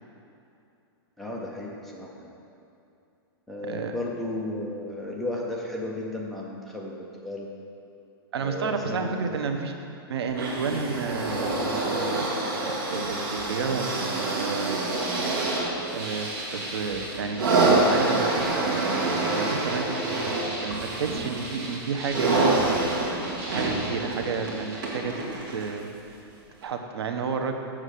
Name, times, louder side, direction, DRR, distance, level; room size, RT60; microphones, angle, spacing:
voice 1, 1.2-2.3 3.5-7.5 8.4-9.4, left 1 dB, ahead, -4 dB, 0.5 m, -34 dB
voice 2, 8.3-9.7 10.1-11.5 11.8-12.3 12.6-13.9 14.2-14.8 15.9-18.3 18.5-20.3 20.6-22.5 23.1-25.1 25.5-25.9 26.6-27.5, right 5 dB, 85° right, 5 dB, 1.0 m, -31 dB
sound 1, 10.3-25.8 26.6-26.7, right 2 dB, 55° right, 2.1 m, -27 dB
Wind, 11.0-14.5 15.1-16.3 16.9-17.0, left 6 dB, 70° left, 1.2 m, -43 dB
sound 2, 14.9-25.0, right 1 dB, 35° right, 1.9 m, -38 dB
7.3 x 6.4 x 6.6 m, 2.7 s
supercardioid pair, 175°, 13 cm